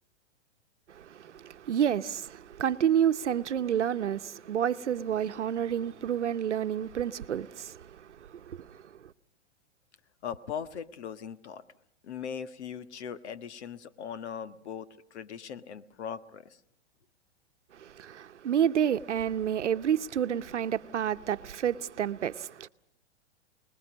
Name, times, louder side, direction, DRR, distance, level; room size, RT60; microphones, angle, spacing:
voice 1, 0.9-9.1 17.7-22.7, right 9 dB, 85° right, 0.9 m, -30 dB
voice 2, 10.2-11.6 12.0-16.6, left 7 dB, 75° left, 1.5 m, -39 dB
28.0 x 20.5 x 6.3 m
hypercardioid pair, 120°, 34 cm